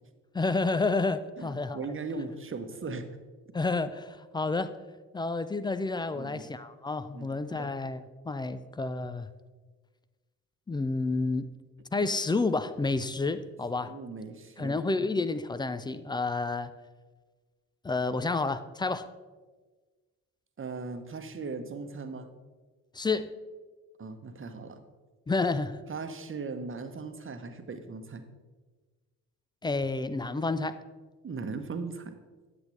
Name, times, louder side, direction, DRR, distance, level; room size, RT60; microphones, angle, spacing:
voice 1, 0.3-1.8 3.5-4.8 5.1-9.3 10.7-11.5 11.9-14.0 14.6-16.7 17.8-19.1 22.9-23.3 25.3-25.8 29.6-30.8, left 3 dB, 10° left, 12 dB, 0.3 m, -30 dB
voice 2, 1.4-3.0 6.1-6.5 7.1-7.7 13.8-14.8 20.6-22.3 24.0-24.8 25.9-28.2 31.2-32.2, right 4 dB, 30° right, 9 dB, 1.0 m, -38 dB
9.1 x 8.1 x 3.3 m, 1.3 s
hypercardioid pair, 45°, 43 cm